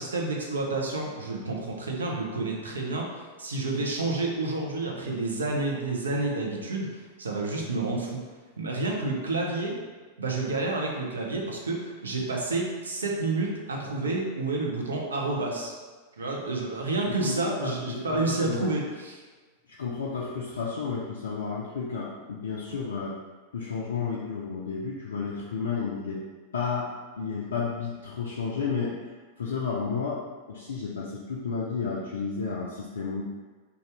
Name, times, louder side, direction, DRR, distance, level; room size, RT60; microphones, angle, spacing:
voice 1, 0.0-3.1 3.4-8.2 8.6-9.8 10.2-15.7 16.2-19.2, right 2 dB, 70° right, -1 dB, 0.5 m, -29 dB
voice 2, 17.1-18.7 19.8-23.2 23.5-26.2 26.5-26.9 27.2-29.0 29.4-30.2 30.5-33.2, left 5 dB, 65° left, -5 dB, 0.3 m, -32 dB
2.6 x 2.3 x 3.3 m, 1.4 s
figure-of-eight pair, 90°, 0 cm